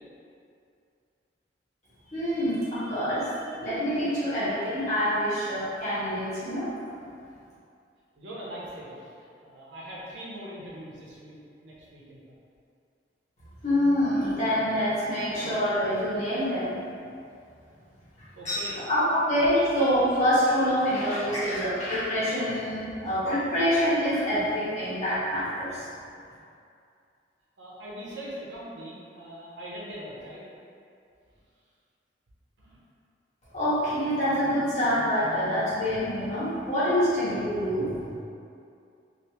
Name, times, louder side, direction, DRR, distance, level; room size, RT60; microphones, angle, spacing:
voice 1, 2.1-6.7 13.6-16.8 18.2-25.8 33.5-38.2, equal, 40° left, -12 dB, 1.4 m, -26 dB
voice 2, 8.2-9.1 9.4-11.4 11.6-12.2 18.4-18.8 27.6-30.4 32.6-32.8, equal, 80° right, -6 dB, 0.8 m, -41 dB
3.3 x 2.7 x 2.9 m, 2.5 s
head